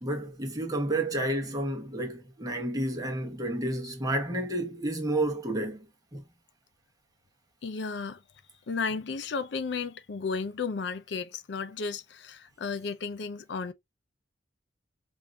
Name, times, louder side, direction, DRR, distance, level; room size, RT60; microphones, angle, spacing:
voice 1, 0.0-5.9 6.1-6.2, right 1 dB, 20° right, 1.0 m, -30 dB
voice 2, 7.6-8.2 8.7-13.7, left 5 dB, 65° left, 0.5 m, -33 dB
5.1 x 2.6 x 2.2 m
head